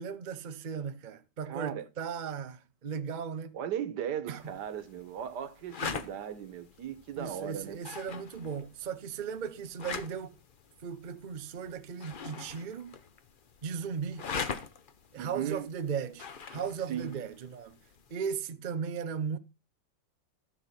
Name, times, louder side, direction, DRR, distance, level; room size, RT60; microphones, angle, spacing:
voice 1, 0.0-3.6 4.3-4.4 5.8-6.0 7.2-10.4 10.8-12.9 13.6-14.3 15.1-17.8 18.1-19.4, right 6 dB, 85° right, 0.4 m, -37 dB
voice 2, 1.5-1.8 3.5-7.8 15.2-15.7 16.9-17.2, right 9 dB, 65° right, 1.5 m, -37 dB
sound 1, 4.4-18.2, left 6 dB, 65° left, 0.5 m, -43 dB
13.0 x 6.6 x 4.2 m
omnidirectional pair, 2.1 m